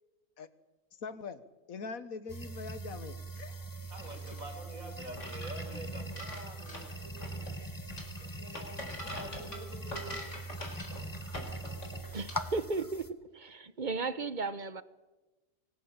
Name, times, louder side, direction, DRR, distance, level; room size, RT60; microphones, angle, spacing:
voice 1, 1.0-1.4 1.7-3.9, left 5 dB, 85° left, 14 dB, 1.7 m, -43 dB
sound 1, 2.3-13.1, right 1 dB, 15° left, 1.3 m, -42 dB
voice 2, 3.9-7.5 8.2-10.2, right 2 dB, 80° right, 4 dB, 4.9 m, -47 dB
sound 2, 4.0-12.5, left 1 dB, 60° left, 4.8 m, -45 dB
voice 3, 12.1-13.1 13.3-14.8, right 4 dB, 40° right, 14 dB, 1.0 m, -35 dB
24.0 x 19.0 x 8.8 m, 1.1 s
omnidirectional pair, 1.4 m